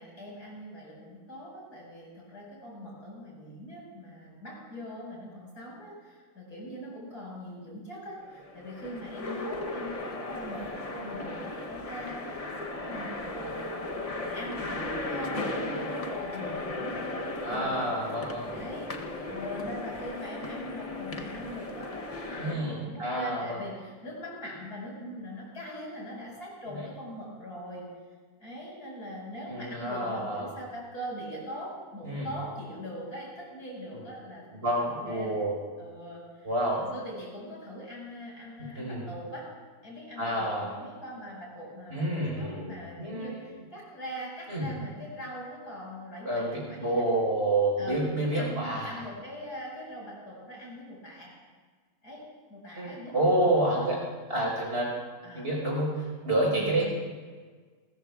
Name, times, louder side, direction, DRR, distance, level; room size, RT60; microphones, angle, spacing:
voice 1, 0.0-27.9 28.4-35.4 35.8-36.5 36.8-39.5 39.8-47.1 47.8-51.3 52.0-52.2 52.5-54.0 55.2-55.5 56.4-56.9, equal, 80° left, -4 dB, 5.9 m, -42 dB
sound 1, 8.2-22.6, left 2 dB, 30° left, 0.7 m, -36 dB
voice 2, 17.4-18.4 22.4-23.6 26.7-26.8 29.5-30.5 32.0-32.3 34.6-35.6 36.4-36.8 38.8-39.0 40.2-40.7 41.9-43.4 44.5-44.7 46.2-49.0 52.8-54.0 54.3-54.9 55.3-56.9, right 1 dB, 40° right, -2 dB, 5.1 m, -28 dB
29.5 x 14.0 x 2.4 m, 1.5 s
omnidirectional pair, 1.6 m